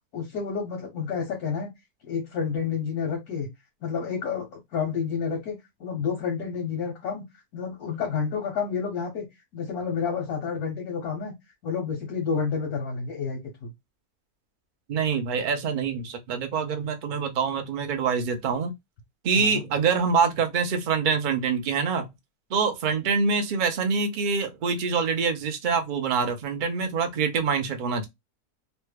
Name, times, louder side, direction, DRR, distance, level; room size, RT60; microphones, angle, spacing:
voice 1, 0.1-1.7 2.0-3.5 3.8-7.2 7.5-9.2 9.5-11.3 11.6-13.7 19.4-19.6, left 6 dB, 80° left, 1.4 m, -30 dB
voice 2, 14.9-18.7 19.2-22.1 22.5-28.1, right 5 dB, 65° right, 0.4 m, -25 dB
3.1 x 2.2 x 3.2 m
omnidirectional pair, 1.6 m